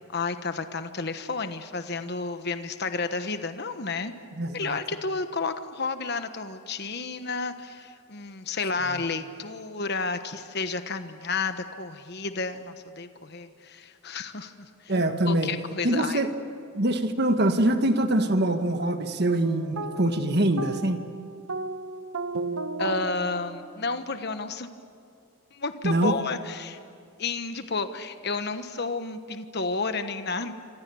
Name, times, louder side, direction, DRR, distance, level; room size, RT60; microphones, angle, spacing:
voice 1, 0.1-4.1 4.5-14.5 14.8-14.9 15.3-16.2 22.8-24.7 25.5-26.8 27.2-30.5, left 4 dB, 50° left, 9 dB, 1.2 m, -31 dB
voice 2, 4.4-4.8 8.9-9.0 14.9-15.5 15.8-16.3 16.8-21.0 25.8-26.1, right 1 dB, 50° right, 7 dB, 1.6 m, -24 dB
sound 1, 19.4-24.0, right 2 dB, 90° right, 1.3 m, -35 dB
28.0 x 26.0 x 7.1 m, 2.3 s
head